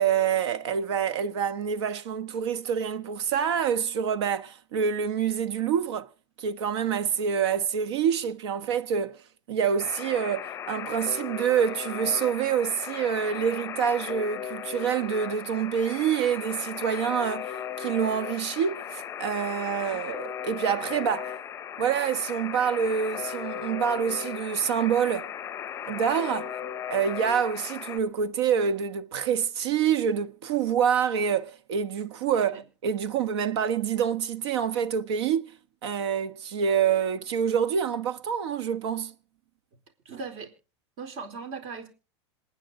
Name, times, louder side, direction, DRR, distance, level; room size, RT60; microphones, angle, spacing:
voice 1, 0.0-6.1 6.4-9.2 9.5-21.4 21.8-25.3 25.8-26.6 26.9-35.6 35.8-39.1, right 7 dB, 65° right, 1.4 m, -27 dB
Alarm, 9.8-28.0, left 9 dB, 20° left, 0.8 m, -37 dB
voice 2, 40.1-40.5 41.0-41.9, right 4 dB, 45° right, 4.2 m, -38 dB
27.0 x 9.5 x 3.8 m
supercardioid pair, 150°, 15 cm